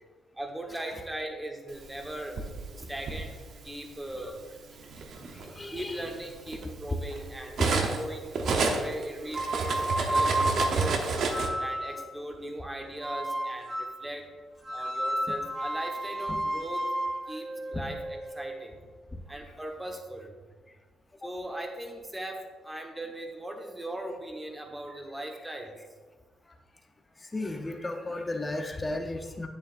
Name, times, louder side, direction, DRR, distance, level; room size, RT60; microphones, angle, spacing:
voice 1, 0.4-2.4 2.7-3.4 3.6-4.4 5.7-8.4 8.7-11.1 11.6-14.3 14.7-16.8 17.3-18.8 19.3-20.3 21.2-25.8, right 1 dB, 10° right, 2 dB, 1.2 m, -39 dB
Cutlery silverware, 1.9-3.2 4.2-4.4 4.8-8.0 8.3-11.5, right 4 dB, 65° right, 0.9 m, -30 dB
voice 2, 5.2-6.0 7.6-7.7 17.7-17.8 19.1-19.2 27.2-29.5, left 2 dB, 20° left, 4 dB, 0.8 m, -34 dB
sound 1, 9.3-12.1 13.0-14.0 14.6-18.6, right 1 dB, 35° right, 2.0 m, -32 dB
8.5 x 7.1 x 2.6 m, 1.4 s
cardioid pair, 90°, 0 cm